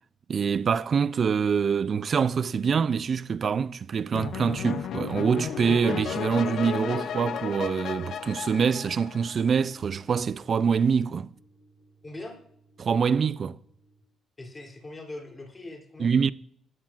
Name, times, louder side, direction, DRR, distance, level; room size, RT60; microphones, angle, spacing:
voice 1, 0.3-11.3 12.8-13.6 16.0-16.3, right 6 dB, 50° right, 0.4 m, -25 dB
sound 1, 4.1-9.6, left 8 dB, 70° left, 0.6 m, -33 dB
sound 2, 6.8-14.0, equal, 85° left, 3.4 m, -56 dB
voice 2, 12.0-12.4 14.4-16.1, left 2 dB, 25° left, 3.2 m, -41 dB
20.0 x 11.0 x 2.5 m
cardioid pair, 90°, 0 cm